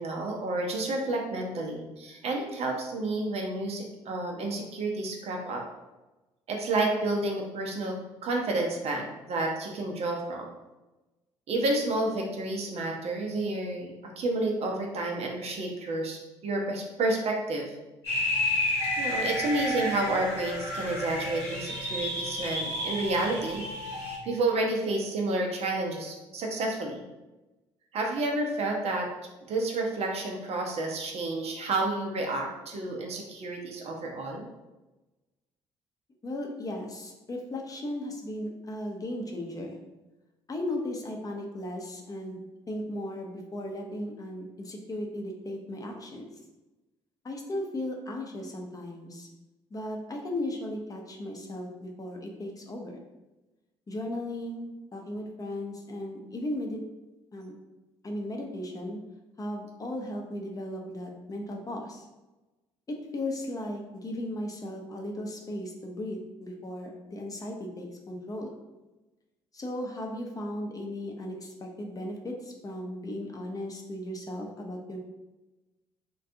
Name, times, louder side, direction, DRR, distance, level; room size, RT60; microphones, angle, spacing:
voice 1, 0.0-5.6 6.5-7.9 8.2-10.5 11.5-17.7 19.0-23.6 24.2-27.0 27.9-29.1 29.5-34.4, right 2 dB, 50° right, 1 dB, 0.5 m, -30 dB
sound 1, 18.0-24.2, left 1 dB, 80° left, 0.9 m, -31 dB
voice 2, 36.2-39.8 40.5-42.4 42.7-46.3 47.2-49.3 49.7-53.0 53.9-56.8 57.3-57.6 58.0-59.0 59.4-62.1 62.9-68.5 69.5-75.0, left 1 dB, 25° left, 1 dB, 0.5 m, -36 dB
2.4 x 2.2 x 2.6 m, 1.1 s
figure-of-eight pair, 50°, 14 cm